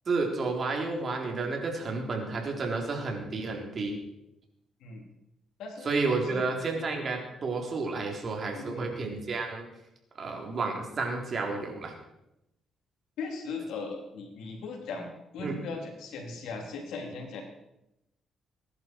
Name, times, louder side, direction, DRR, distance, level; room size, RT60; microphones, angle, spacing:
voice 1, 0.1-4.0 5.8-9.6 10.2-11.9 15.4-15.5, right 3 dB, 45° right, 1 dB, 3.8 m, -31 dB
voice 2, 5.6-6.4 8.5-8.9 13.2-15.1 15.3-17.4, left 4 dB, 85° left, 2 dB, 3.5 m, -38 dB
20.0 x 11.0 x 4.7 m, 0.85 s
cardioid pair, 90°, 0 cm